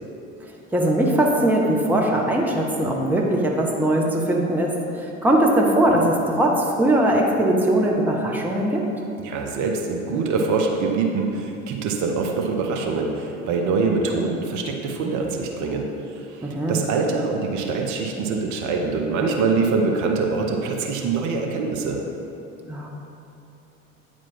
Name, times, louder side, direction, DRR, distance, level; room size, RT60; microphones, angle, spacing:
voice 1, 0.7-8.8 16.4-16.8 22.7-22.9, right 1 dB, 5° right, -1 dB, 0.8 m, -20 dB
voice 2, 9.2-15.9 16.2-22.0, right 4 dB, 45° right, 1 dB, 0.8 m, -24 dB
8.8 x 4.5 x 4.4 m, 2.9 s
figure-of-eight pair, 60°, 40 cm